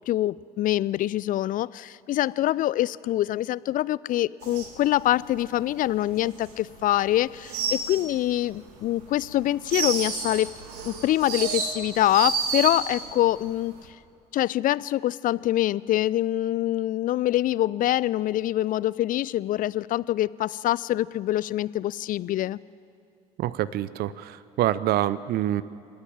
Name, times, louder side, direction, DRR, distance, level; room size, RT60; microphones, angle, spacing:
voice 1, 0.0-10.5 10.8-13.7 14.3-22.6, left 14 dB, 40° left, 21 dB, 0.5 m, -25 dB
sound 1, 4.4-7.0 7.2-8.5 8.9-13.2 13.4-13.9, right 5 dB, 70° right, 2.2 m, -31 dB
voice 2, 23.4-25.6, right 13 dB, 50° right, 18 dB, 0.6 m, -26 dB
27.5 x 10.5 x 9.1 m, 2.5 s
figure-of-eight pair, 55°, 20 cm